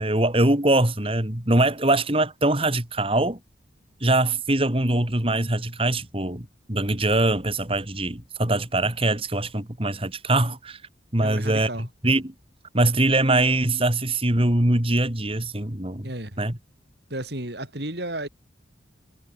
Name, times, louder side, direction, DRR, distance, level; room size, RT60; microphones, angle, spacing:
voice 1, 0.0-3.4 4.0-10.8 11.1-11.7 12.0-12.3 12.7-16.1 16.4-16.6, right 2 dB, 30° right, 2.7 m, -22 dB
voice 2, 11.2-11.9 16.0-16.4 17.1-18.3, right 1 dB, 60° right, 7.5 m, -32 dB
head